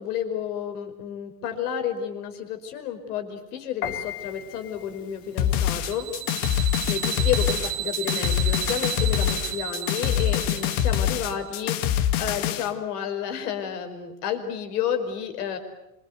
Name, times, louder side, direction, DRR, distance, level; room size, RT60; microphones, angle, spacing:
voice 1, 0.0-6.1 6.9-15.6, left 8 dB, 75° left, 7 dB, 5.3 m, -31 dB
Piano, 3.8-9.7, left 9 dB, 40° left, 3.3 m, -41 dB
sound 1, 5.4-12.7, left 10 dB, 55° left, 2.3 m, -25 dB
sound 2, 5.5-11.5, right 15 dB, 60° right, 1.7 m, -33 dB
26.5 x 24.5 x 8.2 m, 0.92 s
supercardioid pair, 145°, 46 cm